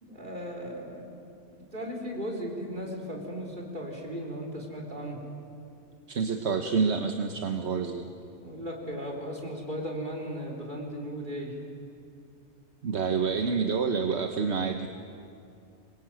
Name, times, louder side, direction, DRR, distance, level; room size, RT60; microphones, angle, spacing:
voice 1, 0.0-1.1 1.5-5.2 8.4-11.6, equal, 45° right, -1 dB, 4.5 m, -36 dB
voice 2, 6.1-8.1 12.8-14.9, right 5 dB, 70° right, 5 dB, 1.4 m, -28 dB
26.5 x 22.0 x 9.1 m, 2.5 s
omnidirectional pair, 1.2 m